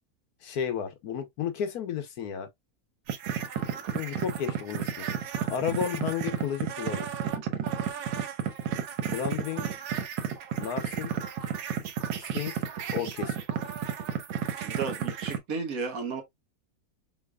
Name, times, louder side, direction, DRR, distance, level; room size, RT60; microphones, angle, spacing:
voice 1, 0.4-2.5 3.9-5.1 5.5-7.1 9.1-9.7 10.6-11.1 12.3-12.5 12.9-13.3, left 8 dB, 75° left, 1.4 m, -32 dB
sound 1, 3.1-15.4, right 9 dB, 80° right, 1.4 m, -32 dB
voice 2, 14.6-16.2, right 5 dB, 65° right, 1.6 m, -34 dB
5.8 x 3.1 x 2.2 m
omnidirectional pair, 1.7 m